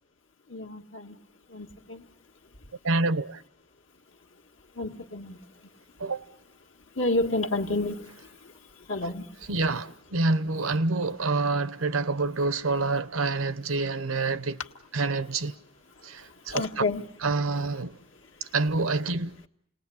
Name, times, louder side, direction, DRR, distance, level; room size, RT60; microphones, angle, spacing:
voice 1, 0.5-1.2 1.5-2.0 4.8-5.4 7.0-8.0 8.9-9.3 16.5-17.0, left 2 dB, 65° left, 1.8 m, -29 dB
voice 2, 2.8-3.4 6.0-6.2 9.0-9.1 9.5-14.6 14.9-15.5 16.0-16.9 17.2-18.0 18.5-19.4, right 3 dB, 85° right, 0.9 m, -27 dB
29.5 x 19.5 x 8.5 m
head